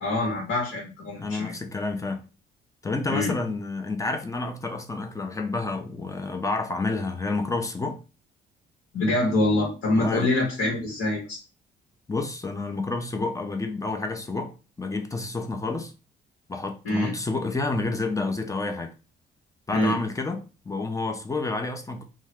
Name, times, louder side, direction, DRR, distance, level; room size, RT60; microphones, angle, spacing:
voice 1, 0.0-1.5 3.1-3.4 8.9-11.4 16.8-17.1 19.7-20.0, left 2 dB, 75° left, 1.2 m, -25 dB
voice 2, 1.2-2.2 2.8-8.0 9.9-10.3 12.1-15.9 16.5-18.9 19.7-22.0, left 3 dB, 15° left, 0.6 m, -29 dB
2.6 x 2.4 x 3.3 m
cardioid pair, 90°, 20 cm